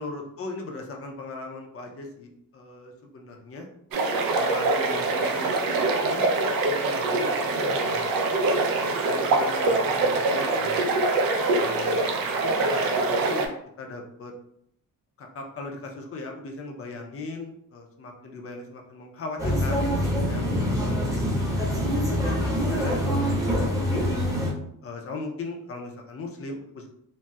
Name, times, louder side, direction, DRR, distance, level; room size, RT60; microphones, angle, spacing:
voice 1, 0.0-3.7 4.3-6.3 6.7-8.4 9.1-10.8 11.6-13.5 13.8-14.3 15.2-19.9 20.3-24.0 24.8-26.9, left 3 dB, 40° left, 2 dB, 0.6 m, -39 dB
sound 1, 3.9-13.5, right 3 dB, 75° right, 0.6 m, -24 dB
sound 2, 19.4-24.5, equal, 10° right, 0.7 m, -25 dB
4.0 x 2.0 x 2.2 m, 0.72 s
cardioid pair, 140°, 35 cm